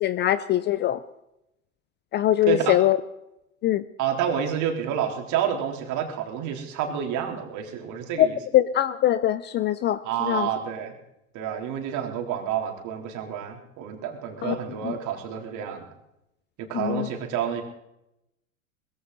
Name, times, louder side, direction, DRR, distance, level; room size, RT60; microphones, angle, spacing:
voice 1, 0.0-1.0 2.1-3.0 3.6-3.8 8.2-8.3 8.5-10.5 14.4-14.6 14.8-15.0 16.7-17.1, left 13 dB, 25° left, 17 dB, 0.5 m, -22 dB
voice 2, 2.4-2.8 4.0-8.4 10.0-11.0 11.3-15.9 16.6-17.6, right 9 dB, 45° right, 3 dB, 3.7 m, -29 dB
20.5 x 15.5 x 4.0 m, 0.85 s
hypercardioid pair, 105°, 42 cm